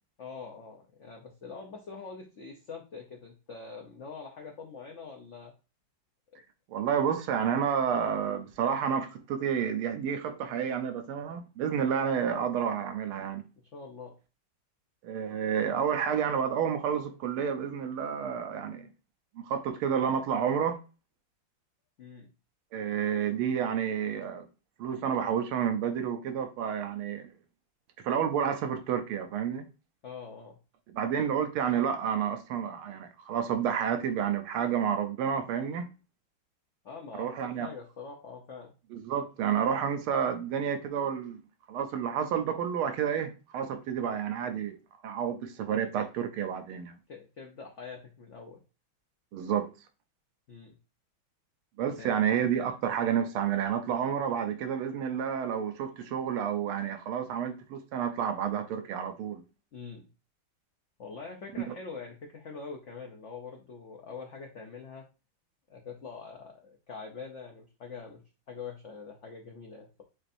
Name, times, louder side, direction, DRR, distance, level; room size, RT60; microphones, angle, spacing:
voice 1, 0.2-5.5 6.3-6.4 13.6-14.1 22.0-22.3 30.0-30.6 36.8-38.7 47.1-48.6 50.5-50.8 51.9-52.1 59.7-60.1 61.0-65.0 65.7-70.0, left 5 dB, 80° left, 0.6 m, -44 dB
voice 2, 6.7-13.4 15.0-18.9 19.4-20.8 22.7-24.5 24.8-27.3 28.0-29.6 30.9-35.9 37.2-37.7 38.9-41.4 41.7-44.8 45.0-46.9 49.3-49.7 51.8-59.4 61.6-61.7, right 8 dB, 85° right, 1.6 m, -30 dB
7.5 x 2.7 x 2.5 m
omnidirectional pair, 2.3 m